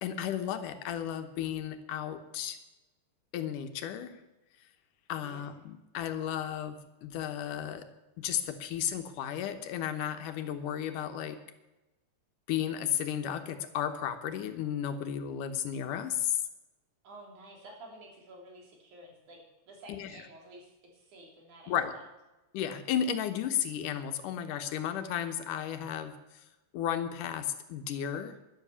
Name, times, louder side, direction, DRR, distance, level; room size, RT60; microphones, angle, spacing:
voice 1, 0.0-2.6 3.3-4.2 5.1-7.9 8.2-11.4 12.5-16.4 19.9-20.1 21.7-21.9 22.5-26.4 26.7-28.4, left 9 dB, 85° left, 8 dB, 2.7 m, -34 dB
voice 2, 5.2-5.6 17.0-19.4 19.7-22.0, right 1 dB, 70° right, 0 dB, 4.6 m, -51 dB
12.5 x 11.5 x 6.9 m, 1.0 s
omnidirectional pair, 3.6 m